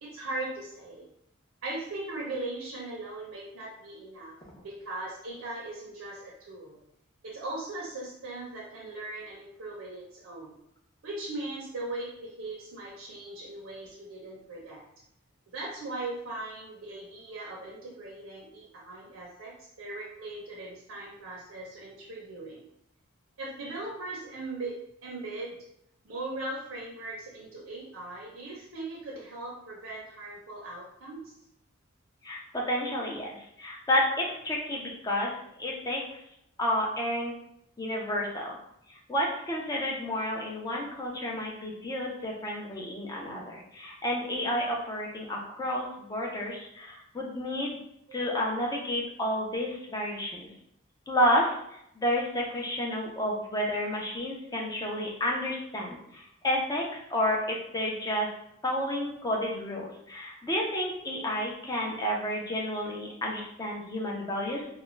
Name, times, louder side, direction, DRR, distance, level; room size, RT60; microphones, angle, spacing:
voice 1, 0.0-1.1 1.6-4.4 4.6-6.8 7.2-10.5 11.0-14.8 15.5-22.7 23.4-24.8 25.0-25.6 26.0-31.3 48.1-48.2, right 2 dB, 80° right, -4 dB, 0.6 m, -39 dB
voice 2, 32.2-35.3 35.6-36.0 36.6-37.3 37.8-38.6 38.9-47.8 48.1-50.5 51.1-58.3 58.6-64.8, equal, 20° left, -2 dB, 0.5 m, -31 dB
2.3 x 2.1 x 3.1 m, 0.75 s
head